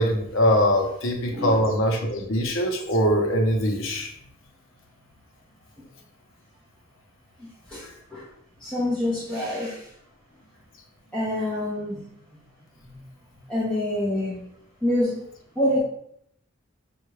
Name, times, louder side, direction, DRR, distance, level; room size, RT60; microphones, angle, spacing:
voice 1, 0.0-4.1, equal, 70° left, 2 dB, 0.8 m, -22 dB
voice 2, 1.3-1.7 7.4-8.3 8.6-9.9 11.1-12.1 12.8-13.0 13.5-14.4 14.8-15.3 15.5-15.8, left 1 dB, 5° left, -10 dB, 0.8 m, -27 dB
5.5 x 2.4 x 3.2 m, 0.72 s
head